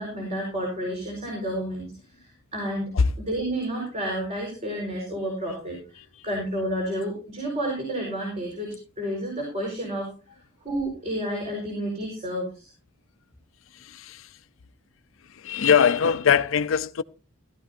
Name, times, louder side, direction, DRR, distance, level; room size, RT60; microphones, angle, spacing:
voice 1, 0.0-1.9 2.2-2.9 3.2-10.1 10.6-12.7, right 1 dB, 35° right, 4.7 m, -30 dB
voice 2, 13.7-14.3 15.3-17.0, left 7 dB, 75° left, 0.5 m, -22 dB
16.0 x 12.5 x 2.6 m
head